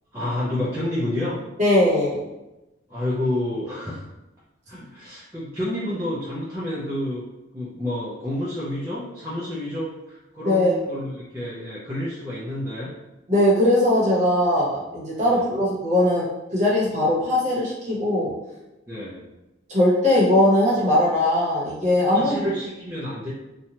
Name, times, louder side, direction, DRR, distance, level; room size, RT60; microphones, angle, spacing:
voice 1, 0.1-1.4 2.9-4.1 4.7-7.3 7.5-12.9 15.3-15.4 18.9-19.2 22.1-23.3, left 1 dB, 15° right, -10 dB, 0.5 m, -29 dB
voice 2, 1.6-2.2 10.4-10.7 13.3-16.3 16.5-18.3 19.7-22.4, left 1 dB, 35° right, -6 dB, 0.9 m, -20 dB
2.9 x 2.2 x 2.8 m, 0.97 s
head